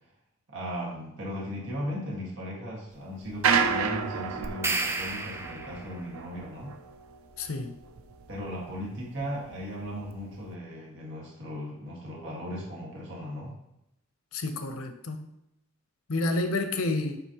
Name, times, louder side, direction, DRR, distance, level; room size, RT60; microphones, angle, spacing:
voice 1, 0.5-6.8 8.3-13.6, equal, 60° right, -4 dB, 1.9 m, -37 dB
sound 1, 3.2-8.8 9.2-10.4, right 6 dB, 85° right, 0.6 m, -30 dB
sound 2, 4.4-6.0, right 3 dB, 10° right, 0.4 m, -32 dB
voice 2, 7.4-7.7 14.3-15.3 16.1-17.2, left 2 dB, 80° left, 6 dB, 0.8 m, -29 dB
8.0 x 5.5 x 3.0 m, 0.84 s
head